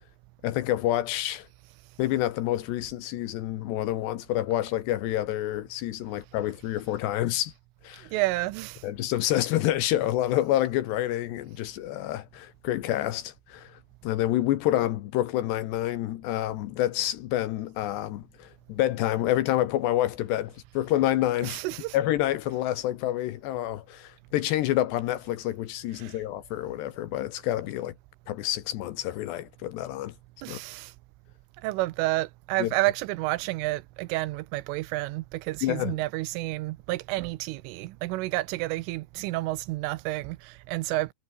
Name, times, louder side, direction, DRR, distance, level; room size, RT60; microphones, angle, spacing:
voice 1, 0.4-1.5 2.0-7.5 7.8-8.1 8.8-21.6 21.9-27.9 28.3-30.1 30.5-30.6 32.6-32.7 35.6-36.0, left 14 dB, 70° left, 2.9 m, -28 dB
voice 2, 8.0-8.8 21.4-22.0 26.0-26.2 30.4-30.9 31.6-41.1, right 19 dB, 85° right, 3.4 m, -30 dB
omnidirectional pair, 5.7 m